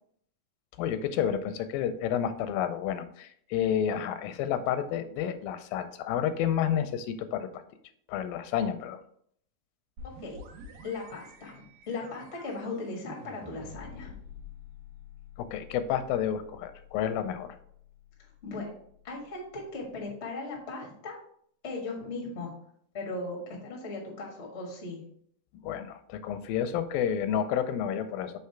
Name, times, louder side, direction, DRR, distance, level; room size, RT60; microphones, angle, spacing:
voice 1, 0.8-7.6 8.1-9.0 15.4-17.6 25.6-28.4, left 9 dB, 85° left, 10 dB, 2.3 m, -30 dB
sound 1, 10.0-19.5, left 3 dB, 90° right, 2.9 m, -49 dB
voice 2, 10.8-14.1 18.4-18.7 19.0-21.2 21.6-22.5 22.9-25.0, left 3 dB, 60° left, -1 dB, 0.6 m, -37 dB
6.6 x 3.4 x 4.4 m, 0.65 s
omnidirectional pair, 4.0 m